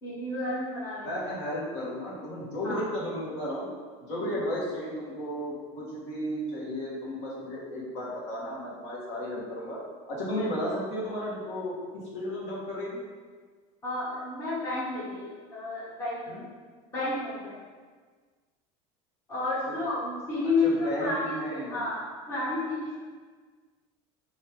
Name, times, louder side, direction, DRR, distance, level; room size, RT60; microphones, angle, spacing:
voice 1, 0.0-1.3 2.6-2.8 4.1-4.3 13.8-16.5 16.9-17.6 19.3-23.0, left 2 dB, 15° left, -9 dB, 0.8 m, -31 dB
voice 2, 1.0-3.7 4.0-9.8 10.1-13.0 16.3-16.4 19.6-19.8 20.6-21.9, equal, 70° left, -6 dB, 1.4 m, -34 dB
3.3 x 2.8 x 4.5 m, 1.5 s
cardioid pair, 175°, 15 cm